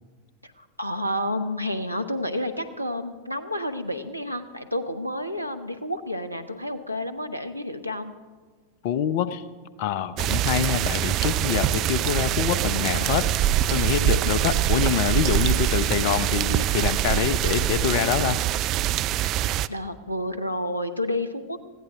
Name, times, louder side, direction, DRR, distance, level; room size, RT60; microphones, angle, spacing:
voice 1, 0.4-8.1 19.7-21.6, left 1 dB, 90° right, 7 dB, 0.9 m, -30 dB
voice 2, 8.8-9.4 9.8-13.3 13.7-18.4, left 9 dB, 50° left, 15 dB, 0.7 m, -25 dB
sound 1, 10.2-19.7, right 13 dB, 35° right, 0.4 m, -24 dB
20.0 x 15.5 x 3.7 m, 1.4 s
figure-of-eight pair, 90°, 0 cm